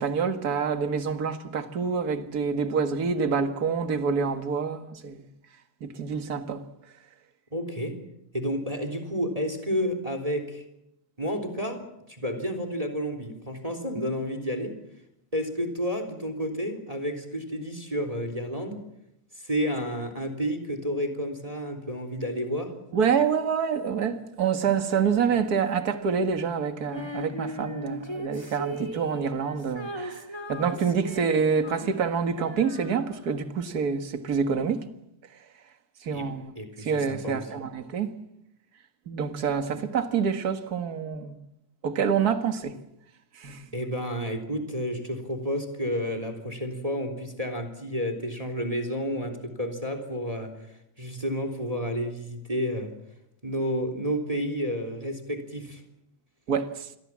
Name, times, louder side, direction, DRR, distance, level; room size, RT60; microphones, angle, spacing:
voice 1, 0.0-5.3 5.8-6.6 22.9-34.9 36.0-36.5 36.8-38.1 39.1-41.4 41.8-42.7 43.3-43.7 56.5-56.9, right 6 dB, 40° right, 1.6 m, -27 dB
voice 2, 7.5-8.0 8.3-10.6 11.2-14.7 15.3-18.8 19.3-22.7 36.1-36.3 36.5-37.4 43.7-52.9 53.4-55.8, equal, 10° right, 3.2 m, -31 dB
Female singing, 26.9-33.4, equal, 15° left, 0.9 m, -38 dB
28.0 x 22.0 x 7.5 m
omnidirectional pair, 3.7 m